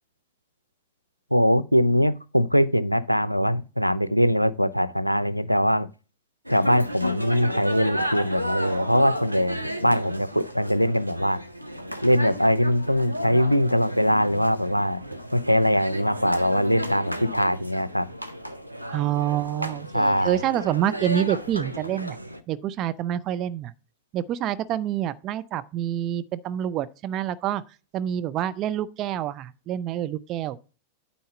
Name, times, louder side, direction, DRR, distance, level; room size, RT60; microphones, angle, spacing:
voice 1, 1.3-5.9 6.5-11.4 12.0-15.0 15.3-18.1 19.9-20.4, equal, 90° left, 0.4 m, -22 dB
sound 1, 6.5-22.4, equal, 90° right, 0.7 m, -33 dB
voice 2, 18.9-22.2 22.5-23.7 24.1-27.6 27.9-30.6, right 11 dB, 35° right, 0.5 m, -27 dB
9.2 x 4.1 x 6.7 m
figure-of-eight pair, 90°, 0 cm